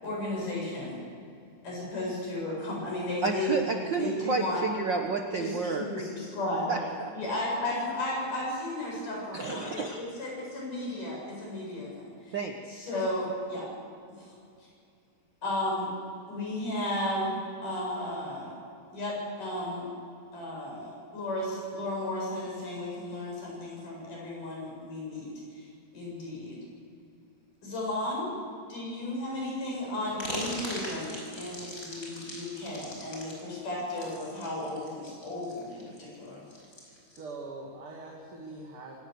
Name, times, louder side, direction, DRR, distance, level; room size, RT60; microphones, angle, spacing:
voice 1, 0.0-1.0 1.6-3.6 3.9-4.6 5.4-6.8 7.1-12.4 12.7-13.7 14.2-14.3 15.4-15.9 16.3-17.4 17.6-18.5 18.9-19.9 20.3-25.7 25.9-26.6 27.6-28.3 28.7-36.4, left 1 dB, 75° left, -3 dB, 9.5 m, -34 dB
voice 2, 3.2-6.1 6.7-7.1 9.3-10.0 12.3-12.6, right 4 dB, 65° right, 3 dB, 1.1 m, -31 dB
sound 1, 30.2-37.2, equal, 25° left, 5.9 m, -40 dB
voice 3, 36.9-39.0, right 3 dB, 45° right, -2 dB, 3.0 m, -43 dB
26.5 x 18.0 x 6.9 m, 2.4 s
omnidirectional pair, 3.8 m